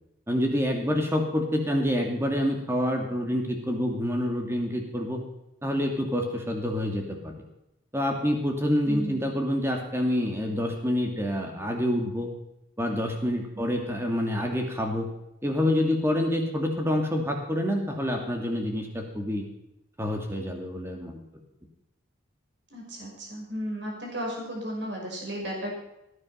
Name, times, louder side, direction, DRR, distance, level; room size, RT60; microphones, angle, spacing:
voice 1, 0.3-5.2 5.6-7.3 7.9-12.3 12.8-15.1 15.4-19.4 20.0-21.2, left 1 dB, 10° right, 2 dB, 2.6 m, -27 dB
voice 2, 8.8-9.2 13.5-13.6 22.7-25.7, equal, 60° right, -1 dB, 5.8 m, -34 dB
18.0 x 9.8 x 5.8 m, 0.86 s
head